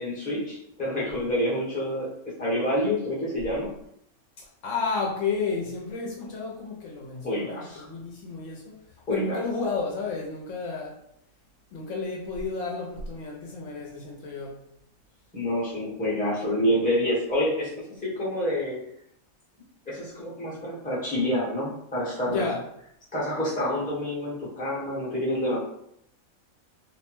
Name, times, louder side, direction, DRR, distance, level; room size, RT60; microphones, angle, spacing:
voice 1, 0.0-2.1 2.4-3.7 7.2-7.9 9.1-9.4 15.3-18.8 19.9-22.5 23.1-25.6, equal, 10° left, -7 dB, 0.6 m, -27 dB
voice 2, 4.4-8.8 9.1-11.0 11.7-14.6 22.3-22.6, left 4 dB, 70° left, -1 dB, 0.9 m, -32 dB
2.6 x 2.1 x 3.0 m, 0.73 s
omnidirectional pair, 1.4 m